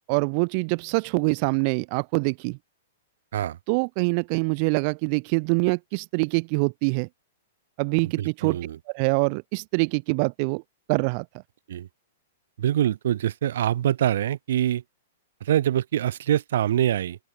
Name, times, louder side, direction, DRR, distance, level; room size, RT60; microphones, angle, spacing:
voice 1, 0.1-2.6 3.7-7.1 7.8-8.6 8.9-10.6 10.9-11.3, right 36 dB, 30° right, 2.2 m, -24 dB
voice 2, 8.2-8.8 11.7-11.9 12.6-14.8 15.4-17.2, right 11 dB, 55° right, 5.7 m, -24 dB
open air
supercardioid pair, 180°, 0 cm